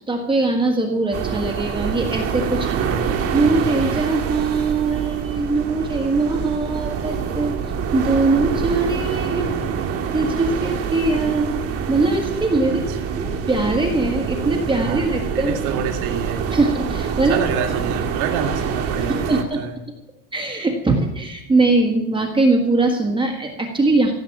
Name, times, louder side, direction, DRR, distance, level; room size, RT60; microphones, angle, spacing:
voice 1, 0.0-2.7 3.3-7.6 7.9-9.6 10.1-11.6 11.9-12.8 13.2-15.6 16.5-17.4 19.1-19.6 20.3-24.1, right 3 dB, 10° right, 2 dB, 1.7 m, -21 dB
sound 1, 1.1-19.4, right 7 dB, 35° right, 1.8 m, -26 dB
voice 2, 2.6-3.2 12.7-13.0 14.7-16.4 17.3-19.7, right 6 dB, 70° right, 3 dB, 2.4 m, -28 dB
16.5 x 8.1 x 7.3 m, 0.89 s
cardioid pair, 160°, 43 cm